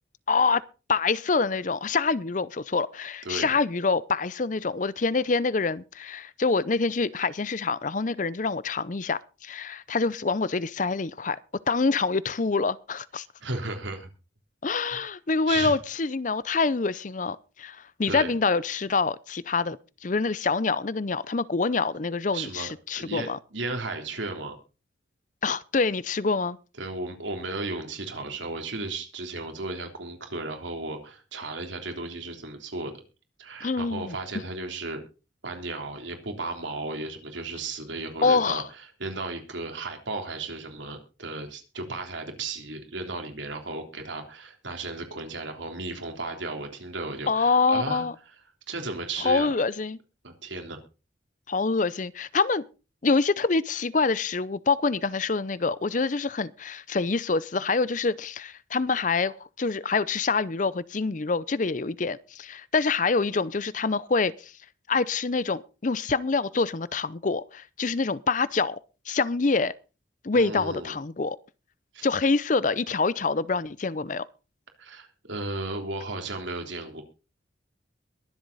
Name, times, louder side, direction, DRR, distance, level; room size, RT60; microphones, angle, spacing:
voice 1, 0.3-0.6 0.9-11.4 11.7-13.3 14.6-19.8 20.0-23.4 25.4-26.6 33.6-34.2 38.2-38.7 47.3-48.1 49.2-50.0 51.5-52.6 53.0-64.5 64.9-68.8 69.1-69.7 70.2-71.4 72.0-74.3, left 4 dB, 40° left, 0.6 m, -26 dB
voice 2, 13.4-14.1 15.5-15.8 18.1-18.3 22.3-24.6 26.8-33.0 33.4-35.0 35.4-38.6 39.0-48.1 48.7-49.5 50.2-50.8 70.3-71.0 71.9-72.0 74.8-77.0, right 3 dB, 75° right, 3.4 m, -35 dB
22.5 x 7.9 x 4.1 m
head